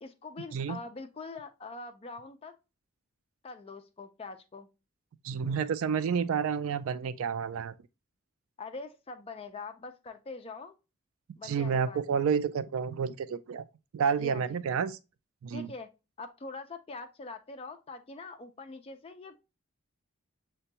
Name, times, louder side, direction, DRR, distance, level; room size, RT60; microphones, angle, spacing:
voice 1, 0.0-2.6 3.4-4.7 8.6-10.7 11.4-12.2 14.0-14.6 15.5-15.9 16.2-19.4, left 3 dB, 25° left, 0.4 m, -43 dB
voice 2, 5.2-7.7 11.4-13.6 13.9-15.0 15.4-15.7, right 6 dB, 70° right, 0.3 m, -30 dB
6.7 x 2.2 x 2.8 m
head